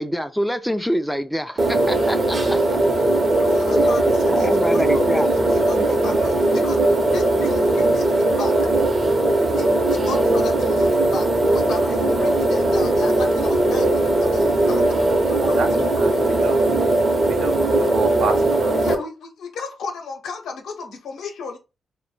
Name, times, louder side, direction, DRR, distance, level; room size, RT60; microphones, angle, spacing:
voice 1, 0.0-2.6 3.7-3.9 4.3-5.3 5.8-6.1, equal, ahead, 0.3 m, -26 dB
sound 1, 1.6-18.9, right 2 dB, 40° right, 0.7 m, -19 dB
voice 2, 3.4-5.1 5.5-8.6 9.6-15.0 15.3-16.7 18.8-21.6, left 4 dB, 85° left, 0.7 m, -34 dB
voice 3, 16.0-16.7 17.2-18.8, right 4 dB, 80° right, 0.6 m, -28 dB
2.1 x 2.1 x 3.1 m
cardioid pair, 95°, 0 cm